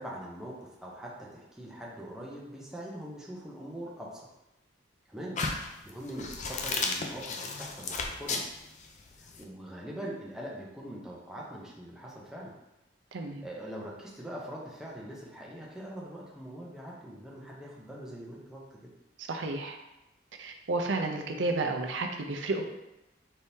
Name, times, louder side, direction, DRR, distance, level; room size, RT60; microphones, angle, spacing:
voice 1, 0.0-4.3 5.1-8.4 9.2-12.5 13.4-18.9, right 1 dB, 5° right, -4 dB, 0.7 m, -42 dB
sound 1, 5.4-9.4, left 4 dB, 40° left, 0.4 m, -34 dB
voice 2, 13.1-13.4 19.2-19.8 20.4-22.7, right 2 dB, 85° right, 3 dB, 0.5 m, -31 dB
4.3 x 3.6 x 2.7 m, 0.92 s
head